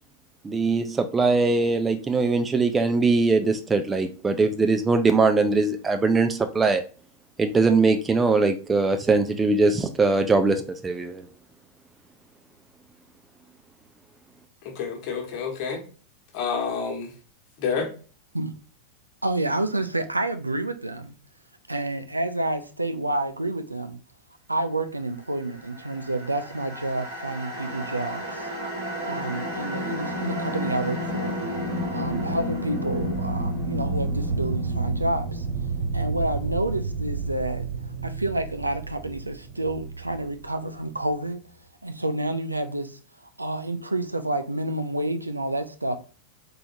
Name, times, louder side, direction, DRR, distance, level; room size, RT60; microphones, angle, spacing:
voice 1, 0.4-6.8 7.4-11.3, right 3 dB, 15° right, 0.4 m, -21 dB
voice 2, 14.6-15.8 16.3-17.1 17.6-17.9, left 6 dB, 45° left, 1.3 m, -28 dB
voice 3, 19.2-21.1 21.7-24.0 24.5-28.5 29.1-31.4 31.9-35.5 35.9-37.7 38.0-41.4 41.8-43.0 43.4-46.0, right 2 dB, 85° right, 0.4 m, -29 dB
sound 1, 25.7-40.9, right 2 dB, 65° right, 2.1 m, -31 dB
3.8 x 3.4 x 2.6 m
figure-of-eight pair, 90°, 0 cm